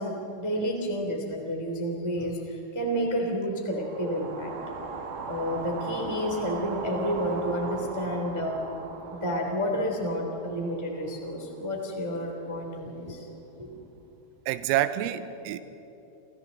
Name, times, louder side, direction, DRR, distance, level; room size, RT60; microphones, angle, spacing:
voice 1, 0.0-4.5 5.3-8.6 9.1-13.2 13.6-13.7, equal, 15° right, 1 dB, 1.0 m, -30 dB
sound 1, 3.7-11.9, right 4 dB, 55° right, 3.6 m, -39 dB
voice 2, 14.5-15.6, right 12 dB, 90° right, 11 dB, 3.5 m, -27 dB
29.0 x 28.5 x 4.1 m, 3.0 s
omnidirectional pair, 5.8 m